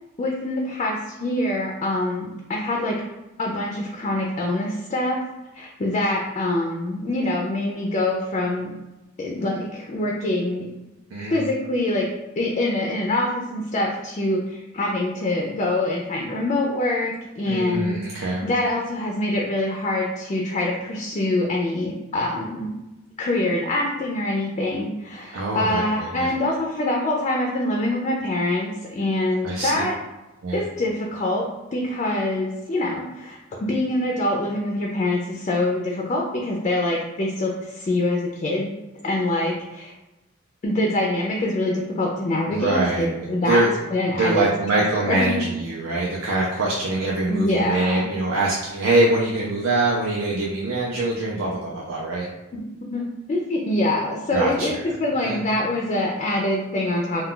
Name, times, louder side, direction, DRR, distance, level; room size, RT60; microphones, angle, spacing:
voice 1, 0.2-3.0 3.4-5.2 5.5-8.7 9.2-10.7 11.3-12.1 12.4-22.7 23.2-30.0 30.5-38.7 39.0-39.9 40.6-43.6 43.9-45.4 47.3-48.0 52.5-57.3, left 1 dB, 35° left, -1 dB, 0.3 m, -25 dB
voice 2, 11.1-11.4 17.5-18.4 25.3-26.3 29.4-29.8 30.4-30.6 42.5-43.2 43.5-43.7 44.1-52.3 54.3-54.8 55.2-55.4, right 2 dB, 90° right, -4 dB, 0.4 m, -24 dB
2.2 x 2.2 x 3.7 m, 1.0 s
head